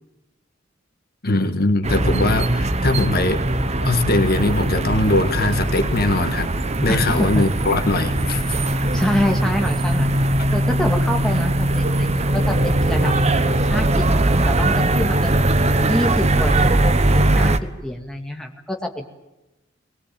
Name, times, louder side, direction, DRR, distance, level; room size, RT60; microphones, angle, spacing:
voice 1, 1.2-3.5 3.8-6.5 6.8-8.4, left 2 dB, 55° left, 7 dB, 1.6 m, -21 dB
sound 1, 1.8-17.6, right 1 dB, 35° right, 1.0 m, -20 dB
voice 2, 6.9-7.4 8.7-10.1 10.5-15.4 15.8-17.6 17.8-19.1, left 1 dB, 5° left, 2 dB, 2.3 m, -26 dB
21.0 x 20.5 x 8.8 m, 0.99 s
head